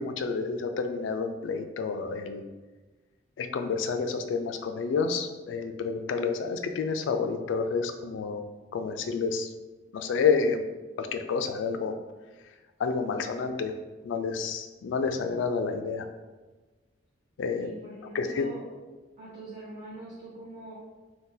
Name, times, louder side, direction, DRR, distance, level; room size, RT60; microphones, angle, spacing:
voice 1, 0.0-2.4 3.4-8.4 8.7-9.5 9.9-10.6 11.0-11.9 12.8-13.7 14.0-16.1 17.4-17.7 18.1-18.5, left 5 dB, 80° left, 7 dB, 0.3 m, -29 dB
voice 2, 17.5-18.6 19.2-20.7, right 1 dB, 40° right, -7 dB, 0.6 m, -43 dB
2.6 x 2.2 x 3.8 m, 1.2 s
head